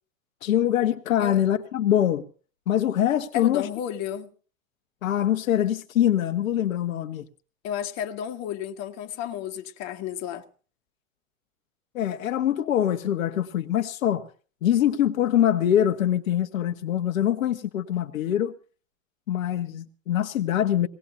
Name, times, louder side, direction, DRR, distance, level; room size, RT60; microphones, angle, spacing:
voice 1, 0.4-2.3 2.7-3.7 5.0-7.3 11.9-14.2 14.6-18.5 19.3-20.9, left 11 dB, 80° left, 1.3 m, -24 dB
voice 2, 3.3-4.3 7.6-10.4 14.8-14.9, left 10 dB, 40° left, 1.7 m, -32 dB
22.0 x 18.5 x 2.7 m
hypercardioid pair, 110°, 40 cm